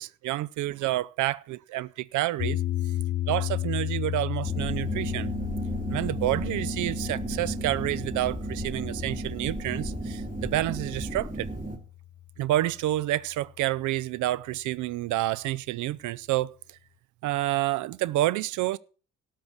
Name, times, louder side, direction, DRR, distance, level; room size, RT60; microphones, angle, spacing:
voice 1, 0.0-2.6 3.3-5.3 5.9-11.5 12.4-16.5 17.2-18.8, right 15 dB, 55° right, 0.5 m, -29 dB
sound 1, 2.4-12.6, left 14 dB, 35° left, 0.5 m, -34 dB
sound 2, 4.4-11.8, right 1 dB, 20° right, 3.3 m, -34 dB
13.0 x 6.6 x 7.3 m
figure-of-eight pair, 45°, 37 cm